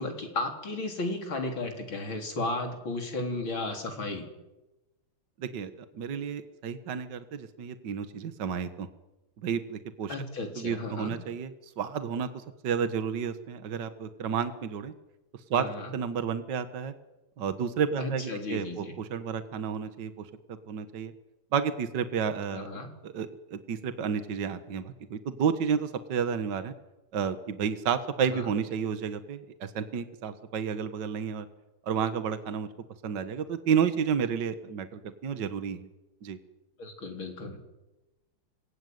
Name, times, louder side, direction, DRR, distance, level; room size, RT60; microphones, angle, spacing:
voice 1, 0.0-4.2 10.1-11.2 15.6-15.9 18.0-19.0 22.5-22.9 28.3-28.5 36.8-37.6, left 2 dB, 70° left, 4 dB, 4.5 m, -34 dB
voice 2, 5.4-8.9 9.4-10.2 10.6-12.3 12.6-14.9 15.5-15.7 15.9-16.9 17.4-20.3 20.7-21.1 21.5-26.7 27.1-31.5 31.9-32.7 33.0-35.9 36.2-36.4, right 7 dB, 60° right, 10 dB, 2.0 m, -31 dB
26.5 x 21.0 x 9.5 m, 1.0 s
omnidirectional pair, 2.2 m